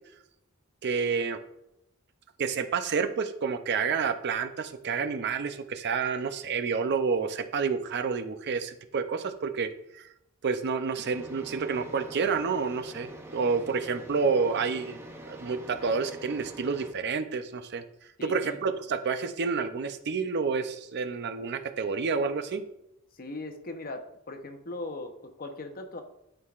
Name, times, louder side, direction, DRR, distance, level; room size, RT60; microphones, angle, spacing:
voice 1, 0.8-1.4 2.4-10.1 10.4-15.0 15.3-17.8 18.2-22.6, right 5 dB, 55° right, 9 dB, 0.5 m, -29 dB
sound 1, 11.1-16.9, right 1 dB, 10° right, 0.7 m, -45 dB
voice 2, 18.2-18.6 23.1-26.0, left 2 dB, 45° left, 6 dB, 0.8 m, -39 dB
11.5 x 4.6 x 2.4 m, 0.84 s
head